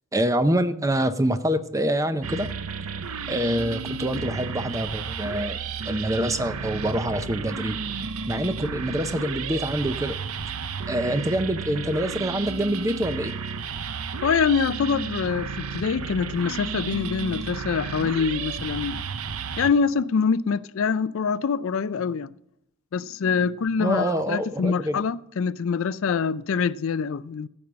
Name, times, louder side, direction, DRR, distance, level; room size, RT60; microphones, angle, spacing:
voice 1, 0.1-2.5 3.3-5.6 5.9-7.8 8.3-10.2 10.9-13.3 23.8-25.0, right 1 dB, 15° right, 0.6 m, -25 dB
sound 1, 2.2-19.7, right 5 dB, 75° right, 0.8 m, -32 dB
voice 2, 14.2-19.0 19.6-22.3 22.9-27.5, left 6 dB, 60° left, 0.4 m, -25 dB
15.0 x 5.4 x 8.5 m
head